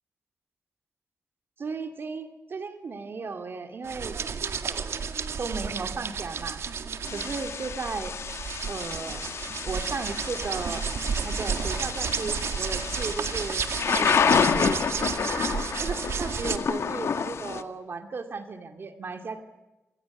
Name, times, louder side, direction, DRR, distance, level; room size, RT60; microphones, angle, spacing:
voice 1, 1.6-4.2 4.6-5.0 5.4-6.6 7.1-8.2 8.7-10.9 11.2-15.2 15.8-19.4, right 4 dB, 50° right, 7 dB, 2.3 m, -35 dB
sound 1, 3.8-16.6, right 6 dB, 65° right, 2.0 m, -32 dB
Thunder / Rain, 7.1-17.6, left 6 dB, 70° left, 1.6 m, -29 dB
28.5 x 26.5 x 7.1 m, 1.1 s
wide cardioid pair, 120°, 5 cm